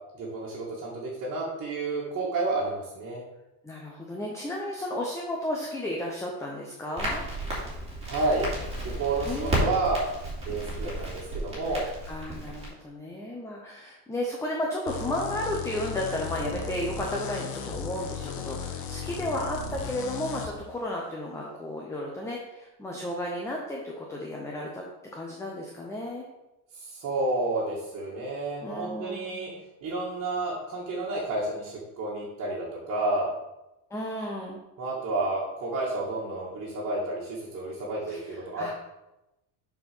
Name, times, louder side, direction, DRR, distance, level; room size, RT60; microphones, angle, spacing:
voice 1, 0.1-3.2 8.1-8.5 9.0-10.1 10.5-11.8 26.7-29.5 29.8-33.3 34.8-38.7, right 2 dB, 40° right, -6 dB, 1.9 m, -30 dB
voice 2, 3.6-7.2 9.3-9.7 11.7-24.8 25.1-26.2 28.6-29.6 33.9-34.6 38.1-38.7, left 1 dB, 5° left, -1 dB, 0.7 m, -33 dB
Crackle, 7.0-12.7, right 1 dB, 15° right, 2.5 m, -33 dB
sound 1, 14.9-20.5, left 6 dB, 80° left, 1.2 m, -36 dB
6.7 x 4.6 x 6.0 m, 0.95 s
cardioid pair, 175°, 41 cm